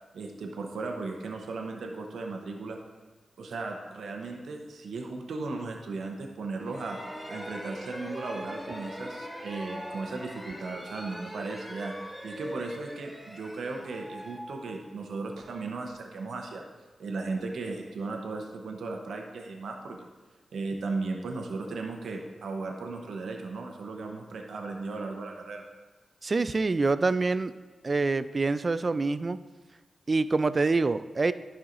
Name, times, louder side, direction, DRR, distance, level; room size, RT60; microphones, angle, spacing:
voice 1, 0.1-2.8 3.4-7.0 7.3-11.9 12.2-16.6 17.0-20.1 20.5-25.6, right 3 dB, 80° right, 2 dB, 0.7 m, -36 dB
sound 1, 6.6-15.3, equal, 5° left, 1.7 m, -42 dB
voice 2, 26.2-27.5 27.8-29.4 30.1-31.3, right 3 dB, 50° right, 14 dB, 0.3 m, -26 dB
11.0 x 5.6 x 2.6 m, 1.3 s
supercardioid pair, 40°, 0 cm